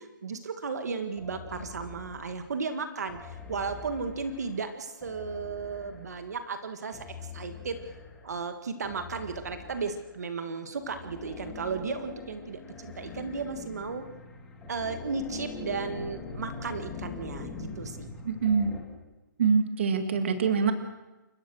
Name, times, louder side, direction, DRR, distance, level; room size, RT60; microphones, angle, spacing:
voice 1, 0.2-7.1 7.3-7.8 8.2-14.1 14.7-18.1, right 4 dB, 50° right, 8 dB, 1.8 m, -35 dB
sound 1, 1.2-2.5 3.1-6.3 6.9-8.3 8.8-10.3 10.8-18.8, left 4 dB, 5° left, 1.8 m, -43 dB
voice 2, 18.2-18.7 19.4-20.7, right 5 dB, 35° right, 8 dB, 1.9 m, -24 dB
29.0 x 15.5 x 6.4 m, 1.1 s
hypercardioid pair, 180°, 11 cm